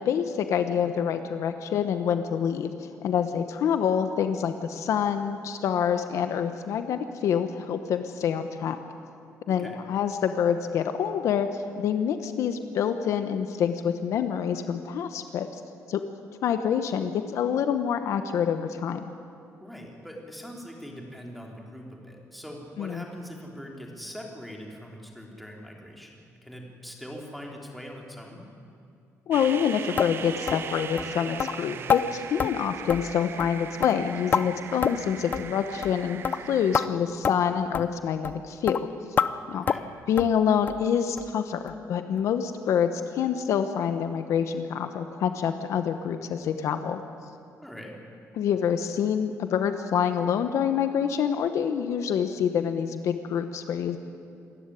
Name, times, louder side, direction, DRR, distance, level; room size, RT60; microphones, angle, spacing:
voice 1, 0.0-8.8 9.5-15.6 15.9-16.0 16.4-19.1 22.8-23.0 29.3-38.8 39.5-39.6 40.1-47.0 48.4-54.0, left 8 dB, 65° left, 8 dB, 1.2 m, -27 dB
voice 2, 19.6-28.5 39.6-39.9 47.6-48.0, equal, ahead, 0 dB, 3.2 m, -42 dB
sound 1, 29.3-36.9, right 7 dB, 45° right, 0.8 m, -39 dB
sound 2, 30.0-30.1 30.5-30.6 31.0-31.1 31.4-31.5 31.9-32.0 32.4-32.5 32.9-33.1 33.4-33.6 33.8-34.4 34.8-35.1 35.3-35.5 35.8-36.0 36.2-36.4 36.7-36.9 37.2-37.4 37.7-37.9 38.2-38.4 38.7-38.8 39.2-39.3 39.7-39.9 40.2-40.3 40.7-40.8 41.2-41.3 41.7-41.8 42.2-42.3, left 7 dB, 35° left, 0.6 m, -26 dB
26.5 x 14.5 x 10.0 m, 2.5 s
cardioid pair, 175°, 6 cm